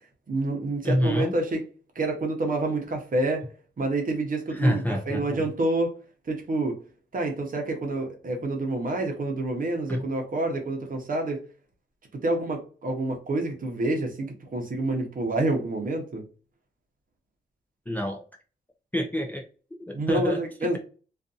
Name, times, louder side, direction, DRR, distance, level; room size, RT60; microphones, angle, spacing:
voice 1, 0.3-1.6 1.9-3.5 3.8-5.9 6.3-6.8 7.1-11.4 12.2-16.2 19.9-20.8, right 2 dB, 45° right, 0.8 m, -28 dB
voice 2, 0.8-1.3 4.5-5.4 9.9-10.0 17.9-18.2 18.9-19.4 19.9-20.4, equal, 10° left, 0.4 m, -27 dB
2.6 x 2.5 x 2.4 m
wide cardioid pair, 120°, 20 cm